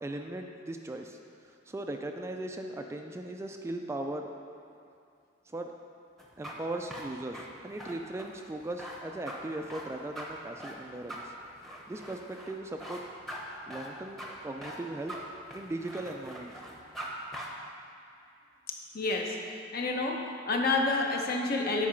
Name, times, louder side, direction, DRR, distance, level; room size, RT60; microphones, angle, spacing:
voice 1, 0.0-4.3 5.5-5.7 6.4-11.3 11.9-13.0 13.7-15.1 15.5-16.5, right 1 dB, 15° right, 4 dB, 0.3 m, -38 dB
sound 1, 6.2-17.1 17.3-17.5, equal, ahead, 0.8 m, -42 dB
voice 2, 18.9-21.9, left 3 dB, 50° left, 1 dB, 0.8 m, -29 dB
8.5 x 4.7 x 5.1 m, 2.5 s
head